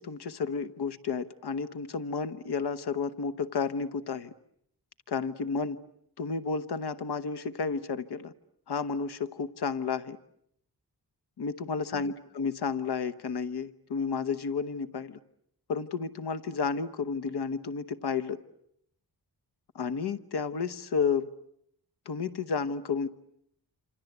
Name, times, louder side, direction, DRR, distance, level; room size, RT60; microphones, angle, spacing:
voice 1, 0.0-4.3 5.1-5.8 6.2-8.3 8.7-10.2 11.4-15.2 15.7-18.4 19.7-21.3 22.1-23.1, left 5 dB, 70° left, 12 dB, 1.1 m, -32 dB
28.0 x 26.5 x 8.0 m, 0.71 s
wide cardioid pair, 175°, 41 cm